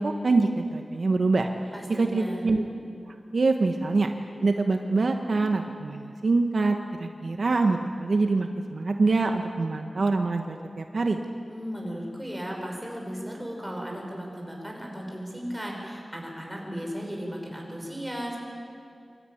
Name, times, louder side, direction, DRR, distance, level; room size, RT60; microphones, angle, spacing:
voice 1, 0.0-1.5 1.9-2.6 3.1-4.1 4.4-11.2, right 3 dB, 70° right, 4 dB, 1.2 m, -25 dB
voice 2, 1.7-2.5 11.5-18.4, equal, 5° right, -1 dB, 5.7 m, -35 dB
26.0 x 13.0 x 9.4 m, 2.4 s
wide cardioid pair, 75°, 0 cm